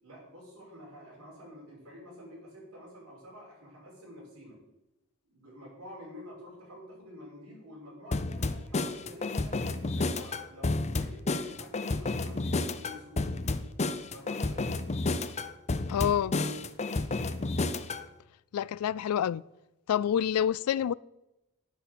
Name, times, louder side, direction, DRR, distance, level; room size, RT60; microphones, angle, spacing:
voice 1, 0.0-4.6 5.3-13.3 14.1-14.7, equal, 75° right, 5.9 m, -49 dB
sound 1, 8.1-18.0, left 2 dB, 30° left, 0.6 m, -31 dB
voice 2, 15.9-16.4 18.5-19.4 19.9-20.9, left 9 dB, 90° left, 0.3 m, -27 dB
10.5 x 9.3 x 6.9 m
head